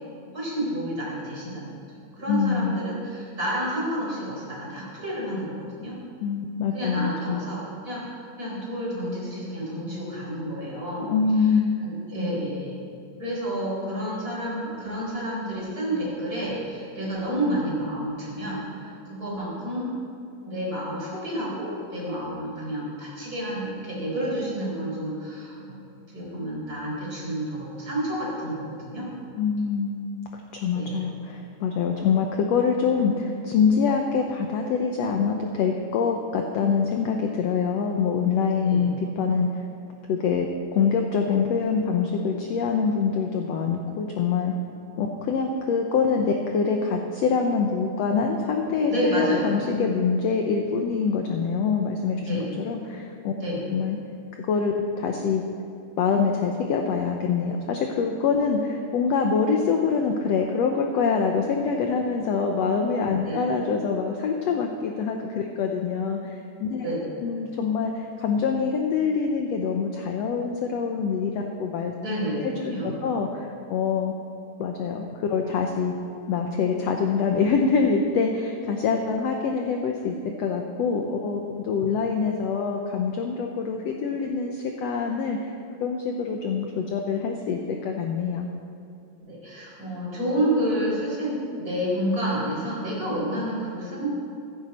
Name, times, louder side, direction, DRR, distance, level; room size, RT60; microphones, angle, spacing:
voice 1, 0.3-1.8 2.1-6.0 6.7-11.1 11.8-12.7 13.2-20.0 20.4-25.8 26.1-29.1 30.7-31.0 38.6-38.9 48.9-49.5 52.2-52.5 53.3-53.6 63.2-63.4 66.8-67.0 72.0-73.1 81.9-82.0 89.3-94.1, right 1 dB, 25° right, -5 dB, 4.6 m, -30 dB
voice 2, 2.3-2.8 6.2-7.4 11.1-11.7 29.4-30.0 30.5-39.6 40.1-44.5 45.0-53.3 53.7-54.0 54.4-55.4 56.0-66.9 67.2-71.9 72.4-72.5 72.8-74.1 74.6-75.9 76.3-85.5 85.8-88.5, left 5 dB, 70° left, 2 dB, 1.7 m, -25 dB
15.5 x 14.0 x 4.3 m, 2.5 s
omnidirectional pair, 3.7 m